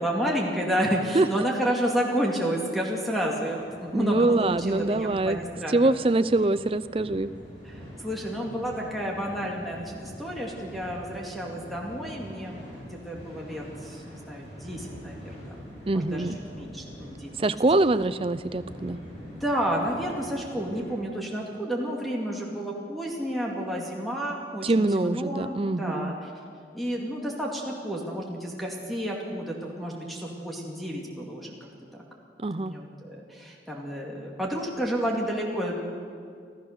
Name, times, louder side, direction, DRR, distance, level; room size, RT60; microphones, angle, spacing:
voice 1, 0.0-5.7 7.6-15.6 15.9-16.3 16.6-17.5 19.2-26.3 26.7-32.0 32.6-35.8, equal, ahead, -2 dB, 2.2 m, -31 dB
sound 1, 3.6-21.0, equal, 30° left, 7.2 m, -44 dB
voice 2, 3.9-5.4 5.7-7.3 15.9-16.4 17.4-19.0 24.6-26.1 32.4-32.7, right 2 dB, 30° right, 14 dB, 0.5 m, -24 dB
26.5 x 14.5 x 6.6 m, 2.2 s
head